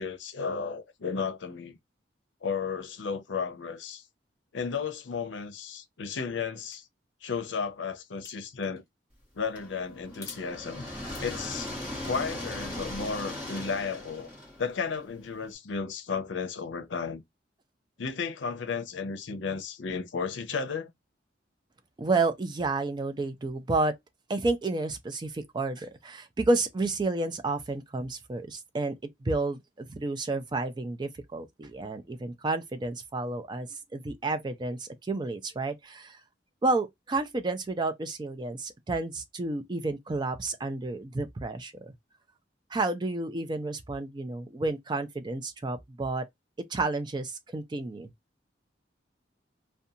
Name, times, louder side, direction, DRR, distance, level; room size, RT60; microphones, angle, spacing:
voice 1, 0.0-1.8 2.4-4.0 4.5-6.9 7.2-8.8 9.3-10.8 11.2-14.3 14.6-17.2 18.0-20.9, left 5 dB, 80° left, 0.6 m, -33 dB
sound 1, 6.7-6.8 8.2-8.9 10.1-10.5 11.0-13.2, left 4 dB, 20° left, 1.0 m, -50 dB
sound 2, 9.6-15.4, left 1 dB, 5° right, 1.2 m, -39 dB
voice 2, 22.0-23.9 24.3-28.9 29.2-36.2 36.6-41.9 42.7-46.2 46.7-48.1, right 3 dB, 25° right, 0.4 m, -31 dB
2.5 x 2.2 x 2.7 m
head